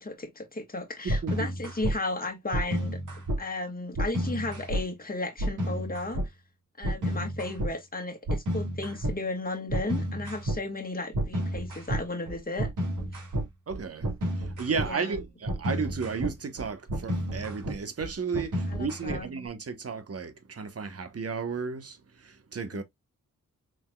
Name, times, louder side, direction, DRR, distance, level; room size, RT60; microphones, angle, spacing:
voice 1, 0.0-3.0 3.4-6.2 6.8-12.7 14.8-15.2 18.7-19.3 22.7-22.8, left 2 dB, 30° left, 1.8 m, -34 dB
voice 2, 1.0-1.5 13.7-14.1 14.4-22.8, right 5 dB, 50° right, 1.1 m, -34 dB
sound 1, 1.1-1.9 2.5-3.4 3.9-4.8 5.4-6.3 6.8-7.7 8.3-9.2 9.7-10.6 11.1-19.5, equal, 70° right, 2.4 m, -31 dB
5.1 x 3.7 x 2.3 m
cardioid pair, 50°, 32 cm